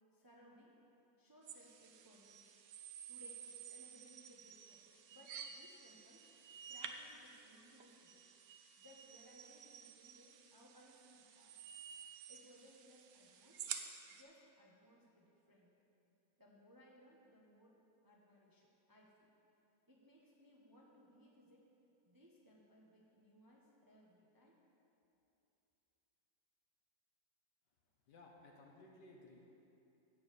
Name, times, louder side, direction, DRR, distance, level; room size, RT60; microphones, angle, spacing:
voice 1, 0.1-0.8 1.2-2.6 3.1-6.3 6.7-8.2 8.8-11.6 12.3-13.7 14.1-15.8 16.4-17.8 18.0-19.3 19.9-21.7 22.0-24.6, equal, 15° right, -3 dB, 1.0 m, -64 dB
sound 1, 1.5-14.2, right 7 dB, 65° right, 1.0 m, -52 dB
voice 2, 28.1-29.4, left 2 dB, 65° left, 0 dB, 1.9 m, -59 dB
13.5 x 4.8 x 8.5 m, 2.8 s
omnidirectional pair, 2.0 m